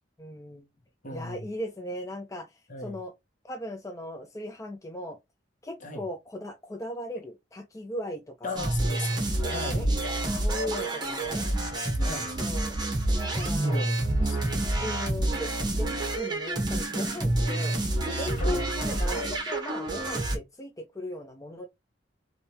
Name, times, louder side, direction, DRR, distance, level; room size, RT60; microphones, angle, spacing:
voice 1, 0.2-0.6 1.1-3.1 3.4-5.2 5.6-8.6 9.7-9.9 10.3-11.5 12.0-12.8 13.2-13.8 14.8-15.9 16.2-17.7 18.0-21.7, left 1 dB, 15° left, 0.4 m, -38 dB
voice 2, 1.0-1.5 2.7-3.0 5.8-6.0 8.4-9.8 12.0-12.3 13.5-14.4 14.7-15.0 18.4-18.6, left 2 dB, 45° left, 1.2 m, -37 dB
sound 1, 8.6-20.4, right 1 dB, 25° right, 1.1 m, -28 dB
3.3 x 2.7 x 2.8 m
head